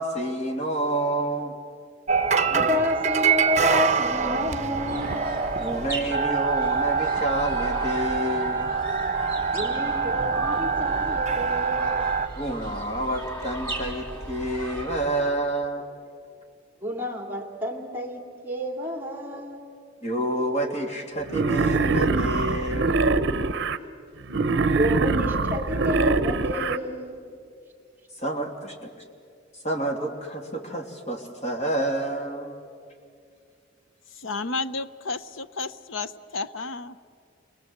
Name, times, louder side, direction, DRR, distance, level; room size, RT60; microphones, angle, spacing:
voice 1, 0.0-1.5 5.6-8.7 12.4-15.9 20.0-23.0 28.2-28.9 29.6-32.5, right 1 dB, 35° left, 2 dB, 3.0 m, -29 dB
sound 1, 2.1-12.3, right 5 dB, 35° right, 0.9 m, -25 dB
voice 2, 2.5-5.2 9.5-12.0 16.8-19.7 24.3-27.2, left 1 dB, 10° right, 3 dB, 2.5 m, -30 dB
sound 2, 4.1-15.5, right 1 dB, 15° left, 4.1 m, -37 dB
Wild animals, 21.3-23.8 24.3-26.8, right 3 dB, 60° right, 0.8 m, -23 dB
voice 3, 34.1-37.0, left 3 dB, 75° left, 15 dB, 0.8 m, -32 dB
29.5 x 23.0 x 8.0 m, 2.3 s
head